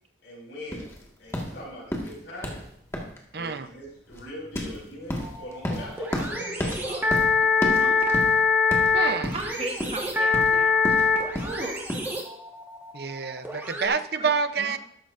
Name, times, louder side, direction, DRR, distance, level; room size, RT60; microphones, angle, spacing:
voice 1, 0.2-2.7 3.3-7.1 7.6-8.0, equal, 75° left, -4 dB, 5.4 m, -41 dB
sound 1, 0.7-12.1, left 1 dB, 15° left, 1.7 m, -33 dB
voice 2, 3.3-3.7 8.9-9.4 12.9-14.8, right 5 dB, 55° right, 10 dB, 0.7 m, -28 dB
sound 2, 5.2-13.9, left 4 dB, 10° right, 1.4 m, -24 dB
voice 3, 7.6-7.9 9.3-11.8 13.8-13.9 14.2-14.3 14.6-14.8, right 2 dB, 30° right, 3 dB, 1.0 m, -36 dB
13.5 x 12.0 x 2.6 m, 0.68 s
head